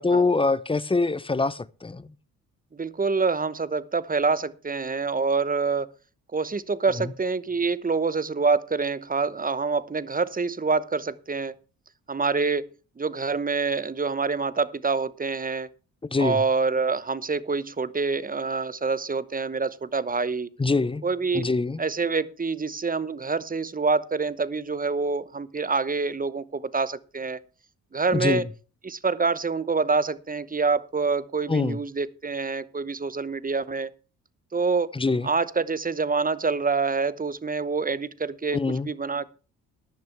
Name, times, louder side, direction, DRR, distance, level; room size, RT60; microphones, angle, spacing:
voice 1, 0.0-2.1 7.0-7.1 16.0-16.4 20.6-21.0 21.3-21.8 28.1-28.5 31.5-31.8 34.9-35.3 38.5-38.9, left 3 dB, 15° left, 0.7 m, -24 dB
voice 2, 2.7-5.9 6.3-11.5 12.1-15.7 16.2-20.5 21.0-21.5 21.8-27.4 27.9-28.5 28.8-33.9 34.5-34.9 35.2-39.2, right 4 dB, 20° right, 0.9 m, -26 dB
15.0 x 10.5 x 3.3 m
hypercardioid pair, 50°, 39 cm